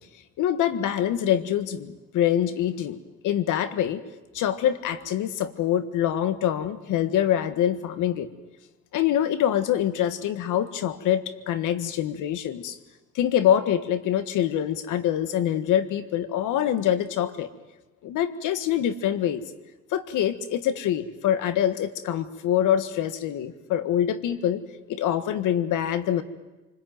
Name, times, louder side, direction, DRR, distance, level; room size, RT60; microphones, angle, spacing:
voice 1, 0.4-3.0 3.2-4.0 4.3-8.3 8.9-12.8 13.1-17.5 18.0-19.4 19.9-24.6 24.9-26.2, left 10 dB, 90° left, 13 dB, 1.6 m, -25 dB
28.0 x 21.0 x 9.3 m, 1.1 s
cardioid pair, 90°, 30 cm